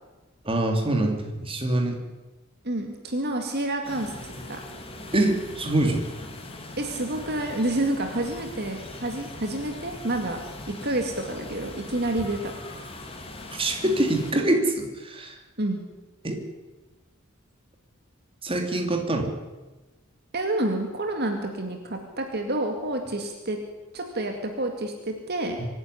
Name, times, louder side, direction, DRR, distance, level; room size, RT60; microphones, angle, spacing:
voice 1, 0.4-2.0 5.1-6.1 13.5-15.4 16.2-16.4 18.4-19.3 25.6-25.7, right 1 dB, 25° right, 3 dB, 2.9 m, -25 dB
voice 2, 2.6-4.6 6.8-10.4 10.8-12.5 15.6-15.8 20.3-23.6 23.9-25.6, right 1 dB, 50° right, 4 dB, 2.3 m, -29 dB
sound 1, 3.8-14.3, left 2 dB, 25° left, 2.6 m, -41 dB
24.5 x 11.0 x 9.9 m, 1.2 s
head